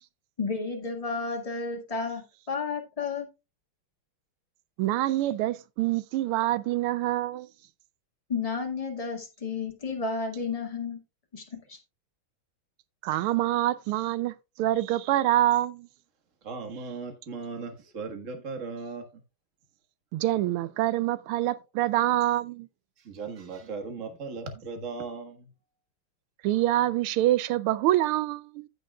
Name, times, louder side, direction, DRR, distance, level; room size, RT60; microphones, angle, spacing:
voice 1, 0.4-3.3 8.3-11.0 11.3-11.8, left 4 dB, 15° left, 1.8 m, -32 dB
voice 2, 4.8-7.5 13.0-15.9 20.1-22.7 26.4-28.7, right 15 dB, 85° right, 1.5 m, -26 dB
voice 3, 16.4-19.2 23.0-25.5, right 4 dB, 40° right, 1.7 m, -37 dB
15.0 x 6.4 x 2.3 m
omnidirectional pair, 2.4 m